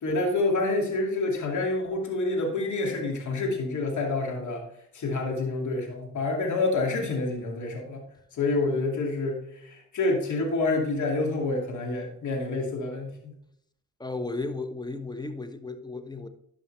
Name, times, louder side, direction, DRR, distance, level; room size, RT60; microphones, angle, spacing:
voice 1, 0.0-4.7 4.9-8.0 8.3-13.3, left 2 dB, 60° left, 1 dB, 2.4 m, -28 dB
voice 2, 14.0-16.3, left 3 dB, 10° left, 9 dB, 1.1 m, -34 dB
11.0 x 5.7 x 3.3 m, 0.74 s
supercardioid pair, 60°, 33 cm